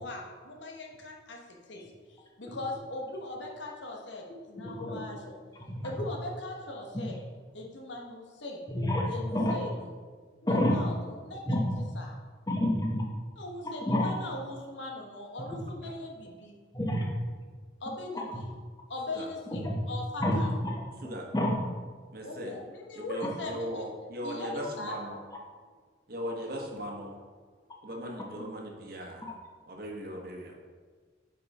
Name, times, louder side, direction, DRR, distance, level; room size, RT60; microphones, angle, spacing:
voice 1, 0.0-1.4 1.7-1.8 2.1-5.4 5.8-7.2 7.5-8.6 9.0-9.9 10.4-12.2 13.4-16.6 17.8-18.5 18.9-20.6 22.2-23.9 24.2-25.2, left 2 dB, 75° left, 0 dB, 1.2 m, -40 dB
voice 2, 8.7-9.6 10.5-10.7 11.5-11.8 12.5-13.0 13.9-14.1 16.7-17.1 18.1-18.4 19.5-19.8 20.2-20.7 21.3-21.6 28.4-28.5, left 1 dB, 20° left, -1 dB, 1.1 m, -28 dB
voice 3, 22.1-22.5 22.9-25.2 26.1-27.1 27.8-29.3 29.7-30.6, equal, 55° right, 0 dB, 1.2 m, -38 dB
8.5 x 4.8 x 4.2 m, 1.5 s
head